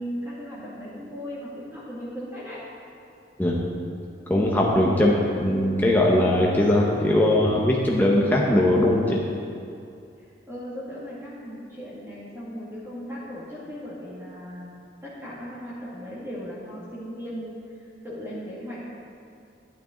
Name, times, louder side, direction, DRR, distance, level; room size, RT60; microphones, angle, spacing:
voice 1, 0.0-2.6 10.5-14.8 15.0-17.8 18.0-18.9, equal, 15° right, -8 dB, 2.2 m, -37 dB
voice 2, 4.3-5.1 5.4-9.2, left 1 dB, 10° left, -3 dB, 0.9 m, -20 dB
12.5 x 8.7 x 3.8 m, 2.5 s
head